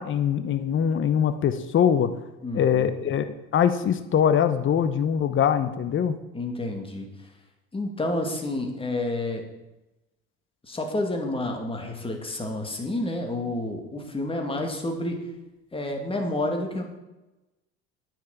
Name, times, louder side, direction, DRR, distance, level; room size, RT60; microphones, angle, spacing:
voice 1, 0.0-2.1 2.5-6.2, left 8 dB, 40° left, 11 dB, 1.0 m, -23 dB
voice 2, 2.4-2.9 6.3-7.1 7.7-9.4 10.7-15.2 15.7-16.8, left 1 dB, 15° left, 3 dB, 2.5 m, -29 dB
9.8 x 6.6 x 8.4 m, 1.0 s
supercardioid pair, 95°, 32 cm